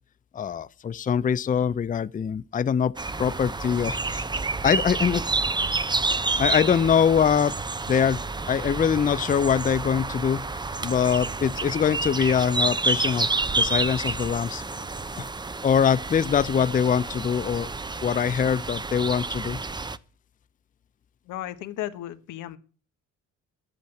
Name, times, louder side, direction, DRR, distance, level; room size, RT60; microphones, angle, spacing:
voice 1, 0.3-2.9 3.2-4.3 4.6-5.3 6.4-7.6 7.9-8.2 8.5-10.4 10.8-13.3 13.6-14.6 15.2-15.3 15.6-17.7 18.0-19.6, left 7 dB, 25° left, 0.5 m, -23 dB
sound 1, 3.0-20.0, right 3 dB, 15° right, 0.6 m, -29 dB
voice 2, 21.3-22.6, left 13 dB, 90° left, 1.2 m, -34 dB
10.5 x 8.4 x 7.6 m
cardioid pair, 90°, 30 cm